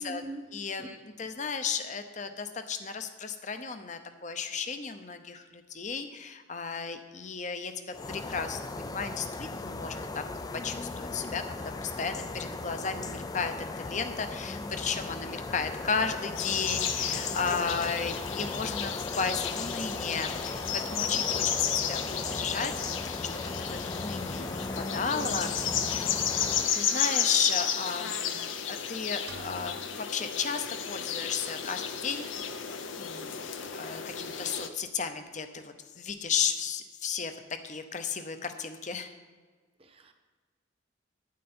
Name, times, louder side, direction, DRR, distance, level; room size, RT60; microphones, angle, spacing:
voice 1, 0.0-0.5 0.8-0.9 17.2-17.9 24.7-25.4 39.8-40.1, right 1 dB, 30° right, 6 dB, 0.9 m, -43 dB
voice 2, 0.5-7.7 8.1-10.2 10.6-22.7 23.3-25.9 26.7-37.3 37.6-39.1, left 5 dB, 35° left, 8 dB, 0.7 m, -34 dB
sound 1, 7.9-26.8, left 3 dB, 20° left, 0.3 m, -37 dB
sound 2, 16.4-34.7, left 8 dB, 75° left, 0.7 m, -33 dB
sound 3, 29.3-31.2, right 3 dB, 55° right, 0.8 m, -49 dB
11.5 x 9.7 x 4.3 m, 1.5 s
head